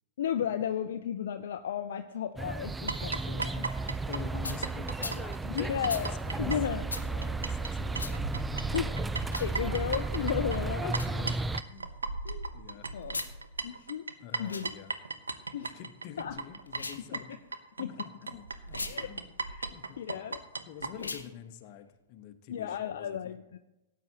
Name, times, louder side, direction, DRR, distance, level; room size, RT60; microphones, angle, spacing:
voice 1, 0.2-3.7 5.5-6.1 6.4-6.9 8.7-8.9 9.4-11.3 12.2-13.2 13.6-14.0 14.4-14.7 15.5-15.8 16.2-16.3 17.1-17.2 17.8-17.9 18.9-19.1 19.5-19.7 20.0-20.4 21.0-21.1 22.5-23.6, left 9 dB, 60° left, 9 dB, 0.5 m, -34 dB
sound 1, 2.4-11.6, right 3 dB, 10° right, 0.4 m, -34 dB
sound 2, 2.9-7.7 7.9-20.9, right 4 dB, 80° right, 0.8 m, -37 dB
voice 2, 4.1-6.5 6.9-9.0 10.8-11.4 11.7-12.1 12.5-12.9 14.2-14.9 15.6-17.3 17.8-19.3 19.7-20.3 20.7-23.3, left 10 dB, 45° left, 9 dB, 1.1 m, -47 dB
sound 3, 4.4-4.6 5.0-5.2 5.9-6.0 6.9-7.1 8.0-8.2 9.2-9.5 10.9-11.1 13.0-13.3 14.4-14.7 16.7-17.1 18.7-19.0 21.0-21.3, left 3 dB, 85° left, 1.0 m, -38 dB
18.0 x 9.2 x 2.9 m, 0.98 s
figure-of-eight pair, 100°, 0 cm